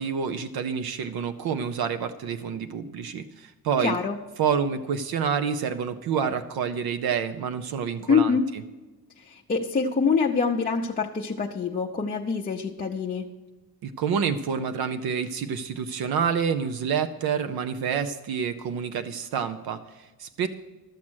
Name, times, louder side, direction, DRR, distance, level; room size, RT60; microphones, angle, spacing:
voice 1, 0.0-4.0 4.4-8.4 13.8-20.5, right 7 dB, 75° right, 10 dB, 0.7 m, -28 dB
voice 2, 3.8-4.2 8.1-8.5 9.2-13.3, left 5 dB, 25° left, -2 dB, 0.6 m, -25 dB
13.0 x 7.4 x 6.2 m, 1.2 s
wide cardioid pair, 165°, 37 cm